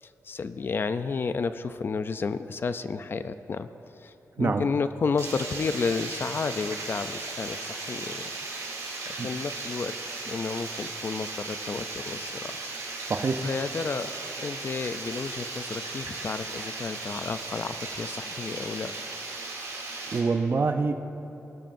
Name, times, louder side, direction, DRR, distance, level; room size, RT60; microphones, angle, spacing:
voice 1, 0.0-3.7 4.0-8.2 9.2-9.9 10.3-12.5 12.8-13.1 13.4-18.9, left 5 dB, 40° left, 11 dB, 0.3 m, -31 dB
Water, 5.2-20.2, right 3 dB, 80° right, 3.0 m, -36 dB
voice 2, 13.1-13.4 20.1-20.9, right 4 dB, 40° right, 8 dB, 0.5 m, -25 dB
20.0 x 12.5 x 2.6 m, 2.9 s
wide cardioid pair, 170°, 6 cm